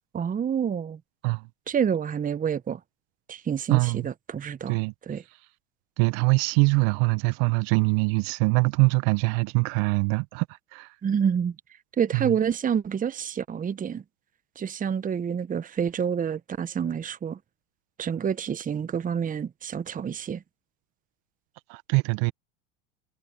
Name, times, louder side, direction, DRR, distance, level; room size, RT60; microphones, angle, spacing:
voice 1, 0.1-1.0 1.7-2.8 3.3-4.8 5.1-5.2 11.0-11.5 12.0-14.0 14.6-17.4 18.0-20.4, right 7 dB, 25° right, 1.1 m, -28 dB
voice 2, 3.7-4.1 4.7-4.9 6.0-10.5 10.7-10.9 12.1-12.3 21.7-22.3, right 29 dB, 60° right, 1.3 m, -23 dB
hypercardioid pair, 80°, 35 cm